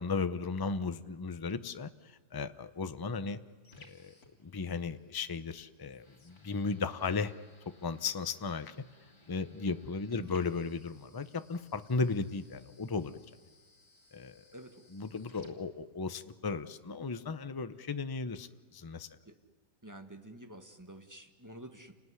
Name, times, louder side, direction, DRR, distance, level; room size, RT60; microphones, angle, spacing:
voice 1, 0.0-3.4 3.8-4.1 4.4-7.3 7.8-8.8 9.3-13.2 14.1-14.4 14.9-19.1, left 4 dB, 30° left, 11 dB, 0.4 m, -35 dB
sound 1, 2.3-16.3, left 2 dB, 60° left, 3.6 m, -62 dB
voice 2, 10.1-10.5 14.5-14.8 15.4-15.5 19.2-19.4 19.8-21.9, right 1 dB, 10° right, 6 dB, 1.5 m, -49 dB
29.5 x 19.5 x 9.7 m, 1.5 s
omnidirectional pair, 1.8 m